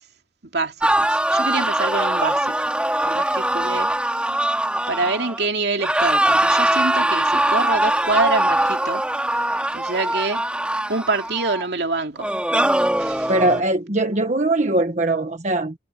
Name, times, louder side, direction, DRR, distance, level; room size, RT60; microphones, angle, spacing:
voice 1, 0.5-2.6 3.0-3.9 4.9-9.3 9.7-10.4 10.9-12.3 13.0-13.3, right 3 dB, 65° right, 2.6 m, -26 dB
sound 1, 0.8-5.5 5.8-11.6 12.2-13.6, right 1 dB, 5° right, 2.7 m, -21 dB
voice 2, 13.3-15.7, right 2 dB, 40° right, 1.4 m, -21 dB
head